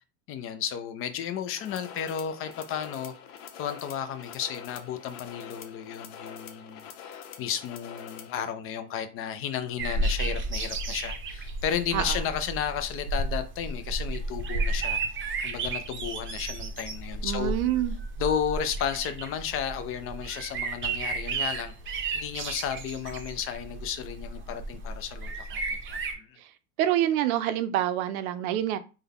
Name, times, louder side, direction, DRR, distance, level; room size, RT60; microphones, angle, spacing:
voice 1, 0.3-3.1 3.6-15.0 15.4-17.5 18.2-26.4, left 8 dB, 35° left, 0.4 m, -33 dB
sound 1, 1.5-8.4, left 8 dB, 85° left, 0.8 m, -45 dB
sound 2, 9.8-26.1, right 3 dB, 30° right, 0.6 m, -33 dB
voice 2, 17.2-18.0 26.4-26.5 26.8-28.8, right 12 dB, 80° right, 0.6 m, -27 dB
3.5 x 2.2 x 3.4 m
supercardioid pair, 115°, 42 cm